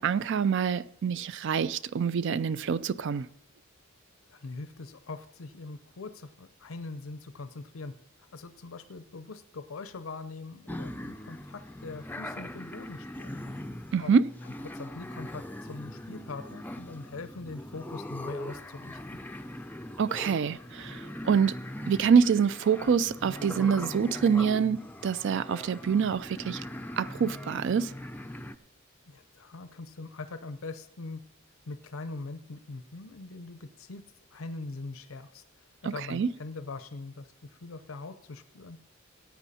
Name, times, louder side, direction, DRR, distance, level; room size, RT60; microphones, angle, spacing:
voice 1, 0.0-3.3 13.9-14.3 20.0-21.6 21.9-26.6 27.0-27.9 35.9-36.3, right 6 dB, 60° right, 0.4 m, -26 dB
voice 2, 4.3-7.9 8.2-13.4 14.0-14.1 14.6-19.2 29.1-31.2 31.7-34.0 34.3-35.4 35.8-38.8, left 3 dB, 85° left, 0.7 m, -42 dB
sound 1, 10.7-28.6, left 1 dB, 10° left, 0.4 m, -41 dB
15.5 x 9.1 x 4.2 m
head